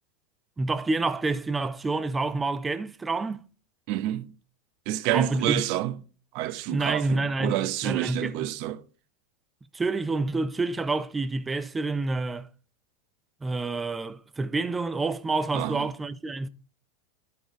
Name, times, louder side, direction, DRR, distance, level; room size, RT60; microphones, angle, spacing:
voice 1, 0.6-3.4 5.1-5.6 6.7-8.5 9.7-12.5 13.4-16.5, right 3 dB, 15° right, 0.7 m, -28 dB
voice 2, 3.9-4.3 4.9-6.0 6.3-8.8 15.5-15.8, right 14 dB, 60° right, 0.9 m, -28 dB
12.5 x 4.8 x 3.2 m
hypercardioid pair, 110°, 0 cm